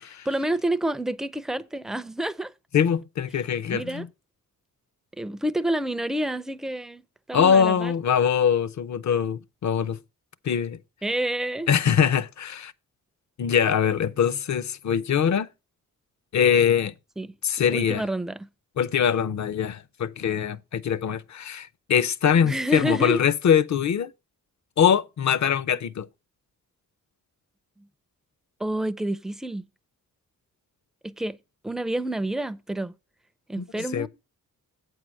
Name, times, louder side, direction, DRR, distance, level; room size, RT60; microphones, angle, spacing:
voice 1, 0.3-2.5 3.7-4.1 5.2-7.0 7.3-7.9 11.0-11.7 17.2-17.3 17.7-18.5 22.4-23.2 28.6-29.6 31.0-31.4 31.6-32.9 33.5-34.1, right 1 dB, ahead, 0.4 m, -28 dB
voice 2, 2.7-4.1 7.3-10.0 10.4-10.8 11.7-12.7 13.4-15.5 16.3-16.9 17.4-18.0 18.8-24.1 24.8-26.1 33.6-34.1, left 8 dB, 60° left, 0.6 m, -23 dB
8.3 x 4.7 x 6.3 m
wide cardioid pair, 110°, 33 cm